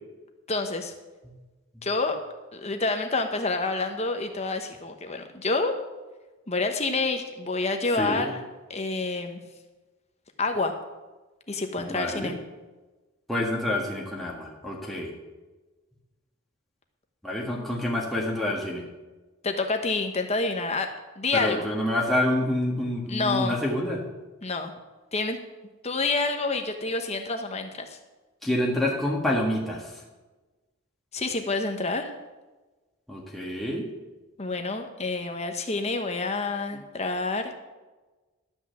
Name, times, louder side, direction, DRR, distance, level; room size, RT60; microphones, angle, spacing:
voice 1, 0.5-0.9 1.8-2.2 2.5-5.7 6.5-8.4 8.7-9.4 10.4-10.7 11.5-12.4 19.4-20.9 21.2-21.7 23.1-23.6 24.4-24.7 25.1-25.4 25.8-28.0 31.1-32.1 34.4-37.6, left 3 dB, 30° left, 5 dB, 1.1 m, -28 dB
voice 2, 11.9-12.3 13.3-15.1 17.2-18.8 21.3-24.0 28.4-30.0 33.1-33.9, left 1 dB, ahead, -3 dB, 1.5 m, -27 dB
12.5 x 6.0 x 7.6 m, 1.2 s
head